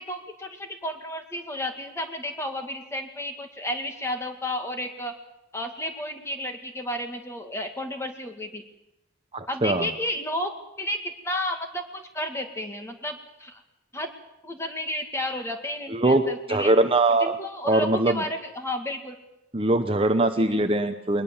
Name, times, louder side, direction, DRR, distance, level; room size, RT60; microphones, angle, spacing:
voice 1, 0.0-5.1 5.5-8.6 9.5-10.5 10.8-13.6 13.9-14.1 14.4-16.7 17.1-19.2 20.4-20.6, left 1 dB, 15° left, 5 dB, 2.2 m, -32 dB
voice 2, 9.3-9.9 15.9-16.2 16.5-17.4 17.7-18.2 19.5-21.2, right 2 dB, 30° right, 8 dB, 0.9 m, -22 dB
21.5 x 20.0 x 7.2 m, 0.86 s
head